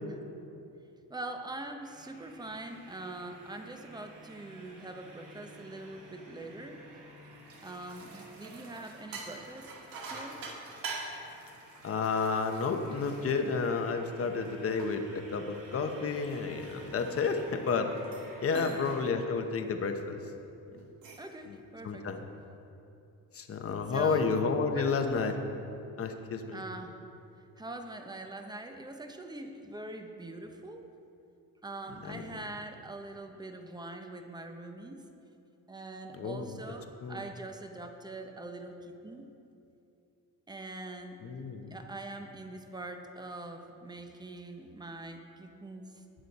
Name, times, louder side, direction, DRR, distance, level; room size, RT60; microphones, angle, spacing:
voice 1, 1.1-7.0 7.6-9.7 10.1-10.4 18.5-18.9 21.1-22.1 23.9-24.3 24.7-24.9 26.5-27.0 27.6-30.9 31.6-35.0 35.7-39.3 40.5-41.2 41.7-46.0, right 2 dB, 10° right, 5 dB, 0.8 m, -43 dB
sound 1, 1.8-19.1, right 1 dB, 60° right, 2.4 m, -54 dB
sound 2, 7.2-14.0 14.4-17.5 18.0-18.3 18.5-19.0 19.4-19.6 20.8-21.3, right 3 dB, 75° right, 1.9 m, -46 dB
voice 2, 11.8-17.9 18.4-20.2 20.7-20.8 21.5-21.6 21.8-22.2 23.3-25.3 26.0-26.6 32.1-32.2 36.1-36.5 37.0-37.2 41.2-41.8, left 5 dB, 40° left, 5 dB, 1.0 m, -31 dB
19.0 x 6.4 x 4.2 m, 2.8 s
cardioid pair, 120°, 35 cm